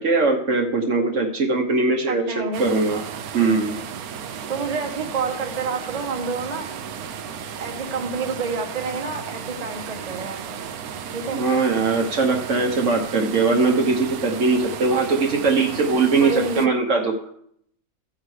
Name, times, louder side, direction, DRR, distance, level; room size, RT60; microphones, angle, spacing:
voice 1, 0.0-2.3 2.6-3.0 3.3-3.7 11.3-17.1, right 3 dB, 60° right, 2 dB, 1.3 m, -20 dB
voice 2, 2.1-2.7 4.5-6.7 7.6-10.6 11.1-11.4 16.2-16.7, right 4 dB, 30° right, 3 dB, 1.1 m, -28 dB
sound 1, 2.5-16.7, right 7 dB, 90° right, 1.2 m, -34 dB
13.5 x 9.0 x 3.3 m, 0.69 s
omnidirectional pair, 1.5 m